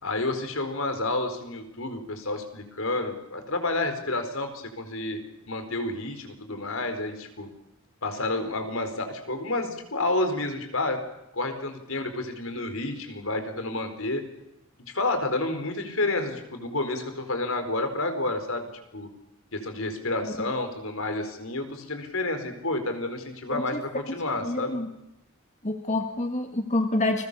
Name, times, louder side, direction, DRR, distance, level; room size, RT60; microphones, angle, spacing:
voice 1, 0.0-5.2 5.5-7.5 8.0-11.0 11.3-14.2 14.9-18.6 18.9-19.1 19.5-24.8, left 2 dB, 70° left, 7 dB, 4.7 m, -30 dB
voice 2, 24.4-24.9 25.6-27.3, left 2 dB, 35° left, 5 dB, 1.9 m, -27 dB
30.0 x 22.0 x 7.0 m, 0.84 s
head